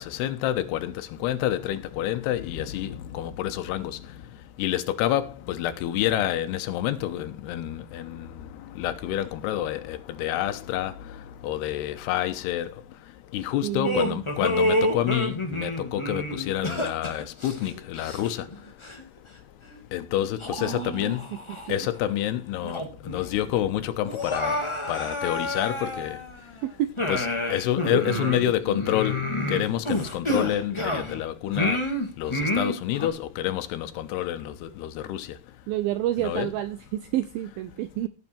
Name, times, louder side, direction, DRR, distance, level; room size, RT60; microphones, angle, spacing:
voice 1, 0.0-4.0 4.6-8.5 8.8-10.9 11.4-12.7 13.3-18.5 19.9-21.2 21.7-24.6 24.9-26.2 27.1-29.2 29.5-31.8 32.2-35.3 36.2-36.5, left 12 dB, 80° left, 3.0 m, -28 dB
voice 2, 13.6-14.2 20.6-21.1 21.7-21.9 26.6-26.9 27.9-28.4 35.7-38.1, right 13 dB, 75° right, 2.3 m, -29 dB
sound 1, 13.8-18.5 18.8-19.0 19.7-19.8 20.4-21.7 22.1-22.2 22.6-23.2 23.4-23.5 24.0-26.5 27.0-31.2 31.5-33.1, left 1 dB, 15° left, 1.0 m, -28 dB
17.5 x 6.3 x 4.4 m
omnidirectional pair, 4.8 m